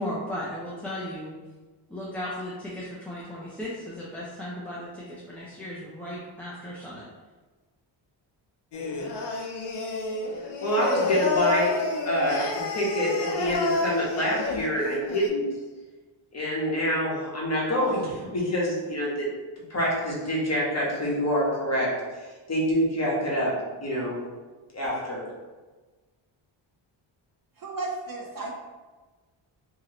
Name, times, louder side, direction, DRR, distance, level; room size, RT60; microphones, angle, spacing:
voice 1, 0.0-1.3 1.9-7.0, left 1 dB, 5° left, -8 dB, 0.4 m, -36 dB
Singing, 8.7-15.3, left 3 dB, 60° left, 0.6 m, -29 dB
voice 2, 10.6-11.8 12.1-15.5 16.3-19.3 19.7-24.2 24.7-25.2, equal, 35° left, -5 dB, 1.0 m, -26 dB
voice 3, 27.6-28.5, right 2 dB, 45° right, -1 dB, 0.5 m, -34 dB
2.9 x 2.8 x 2.9 m, 1.3 s
wide cardioid pair, 120°, 47 cm